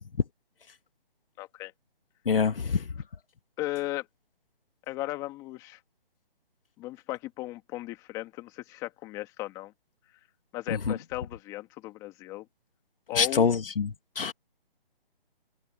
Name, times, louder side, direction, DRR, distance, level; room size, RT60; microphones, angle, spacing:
voice 1, 1.4-1.7 3.6-4.1 4.9-5.8 6.8-9.7 10.5-12.5 13.1-13.5, left 17 dB, 10° left, 2.0 m, -36 dB
voice 2, 2.3-2.9 10.7-10.9 13.1-14.3, left 6 dB, 70° left, 2.4 m, -26 dB
hypercardioid pair, 170°, 29 cm